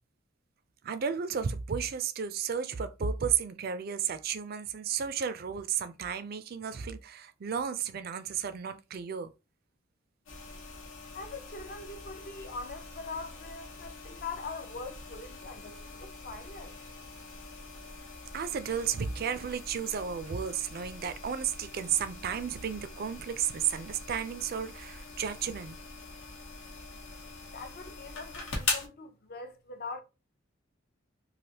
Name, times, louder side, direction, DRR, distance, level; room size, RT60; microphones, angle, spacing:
voice 1, 0.8-9.3 18.3-25.8, right 7 dB, 50° right, 0.4 m, -33 dB
sound 1, 10.3-28.9, left 3 dB, 75° left, 0.9 m, -42 dB
voice 2, 11.1-16.7 27.5-30.0, left 4 dB, 50° left, 0.6 m, -42 dB
3.2 x 2.5 x 2.7 m
head